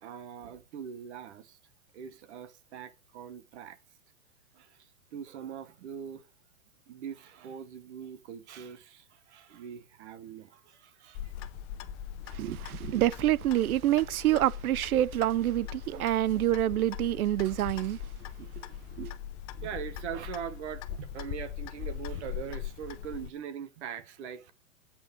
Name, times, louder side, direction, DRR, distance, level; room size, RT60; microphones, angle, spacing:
voice 1, 0.0-1.6 1.9-3.8 4.5-6.2 6.9-11.3 12.2-12.3 18.4-18.5 19.5-24.5, right 8 dB, 50° right, 1.1 m, -42 dB
Clock, 11.1-23.3, left 10 dB, 20° left, 0.5 m, -41 dB
voice 2, 12.3-18.0 19.0-19.1, right 13 dB, 80° right, 0.5 m, -27 dB
8.6 x 6.0 x 5.1 m
hypercardioid pair, 140°, 43 cm